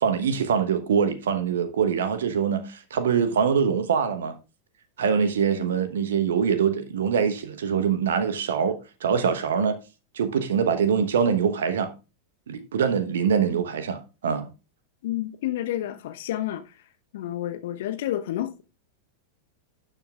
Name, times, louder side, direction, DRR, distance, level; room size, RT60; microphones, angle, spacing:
voice 1, 0.0-4.3 5.0-9.8 10.1-11.9 12.5-14.5, right 7 dB, 65° right, 1.1 m, -24 dB
voice 2, 15.0-16.7 17.1-18.6, left 13 dB, 55° left, 0.9 m, -30 dB
11.5 x 7.6 x 2.4 m
figure-of-eight pair, 90°, 0 cm